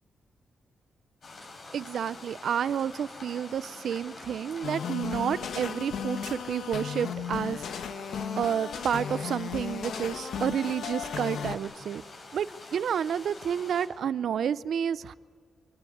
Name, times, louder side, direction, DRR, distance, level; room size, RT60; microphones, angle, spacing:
sound 1, 1.2-13.9, left 2 dB, 50° left, 6.2 m, -47 dB
sound 2, 1.3-14.2, left 2 dB, 25° left, 5.7 m, -58 dB
voice 1, 1.7-7.6 8.4-12.0 12.3-12.5 12.7-15.1, right 8 dB, 70° right, 16 dB, 0.6 m, -30 dB
sound 3, 4.6-11.6, left 7 dB, 85° left, 1.2 m, -35 dB
26.0 x 17.0 x 9.5 m, 2.1 s
wide cardioid pair, 125°, 0 cm